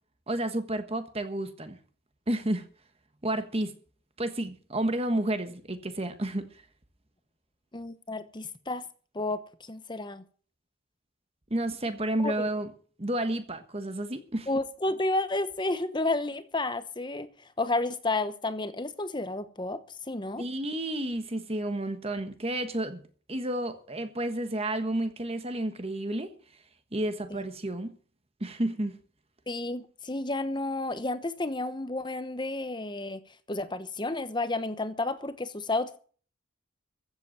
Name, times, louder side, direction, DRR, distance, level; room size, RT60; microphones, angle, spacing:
voice 1, 0.3-1.8 2.3-2.7 3.2-3.7 4.2-6.4 11.5-12.7 13.0-14.5 20.4-23.0 23.3-26.3 26.9-28.0 28.4-29.0, right 1 dB, 30° right, 1.3 m, -31 dB
voice 2, 7.7-8.8 9.1-10.2 12.2-12.5 14.5-20.4 27.3-27.4 29.5-33.2 33.5-36.0, left 2 dB, 20° left, 1.0 m, -31 dB
15.0 x 8.1 x 7.3 m
head